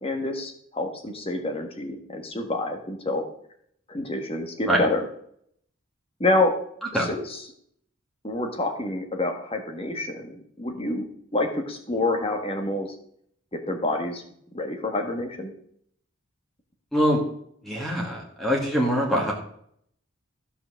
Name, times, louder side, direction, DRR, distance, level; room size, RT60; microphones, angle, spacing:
voice 1, 0.0-3.2 3.9-5.1 6.2-6.6 7.0-7.4 8.2-11.0 11.3-12.9 13.5-14.2 14.5-15.5, left 2 dB, 25° left, 4 dB, 1.6 m, -27 dB
voice 2, 16.9-17.2 17.6-19.3, equal, ahead, -2 dB, 2.0 m, -23 dB
14.0 x 5.9 x 6.3 m, 0.67 s
head